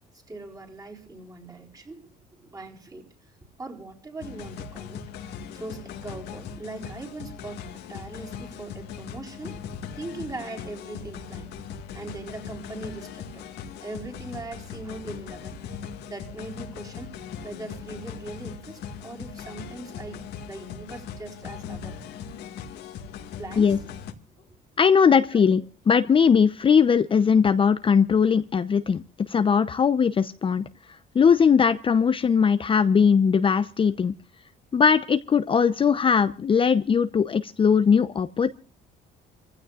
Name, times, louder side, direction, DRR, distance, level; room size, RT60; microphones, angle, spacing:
voice 1, 0.1-3.1 3.6-5.0 5.2-9.5 9.9-11.5 11.9-13.5 13.8-15.6 16.1-17.1 17.4-22.0 23.4-23.8 25.3-25.5, right 3 dB, 20° right, 0 dB, 4.4 m, -40 dB
sound 1, 4.2-24.1, left 7 dB, 80° left, 2.0 m, -39 dB
voice 2, 24.8-25.6 25.9-30.6 31.1-34.1 34.7-38.5, left 6 dB, 30° left, 10 dB, 0.7 m, -20 dB
28.0 x 15.5 x 2.4 m, 0.36 s
cardioid pair, 110°, 17 cm